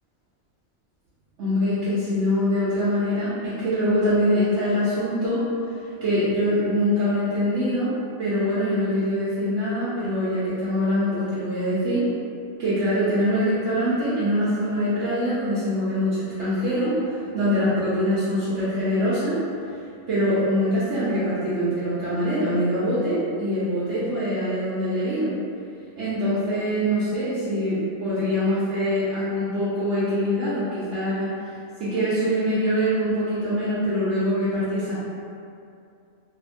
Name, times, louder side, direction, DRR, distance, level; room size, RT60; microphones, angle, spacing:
voice 1, 1.4-5.5 6.0-7.9 8.2-12.0 12.6-19.4 20.1-25.3 26.0-31.4 31.8-35.0, equal, 65° right, -11 dB, 0.9 m, -24 dB
2.7 x 2.6 x 2.5 m, 2.5 s
omnidirectional pair, 1.4 m